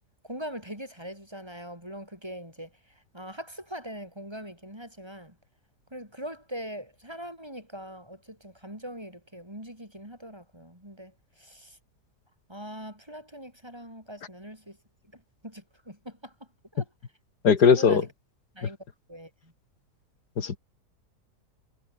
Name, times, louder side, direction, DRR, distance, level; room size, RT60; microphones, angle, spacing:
voice 1, 0.2-5.3 5.9-11.8 12.5-14.8 15.1-16.3 16.7-16.9 17.6-18.1 18.5-18.8 19.1-19.5, equal, 15° right, 6.7 m, -41 dB
voice 2, 17.4-18.0 20.4-20.6, left 6 dB, 75° left, 2.5 m, -19 dB
omnidirectional pair, 1.7 m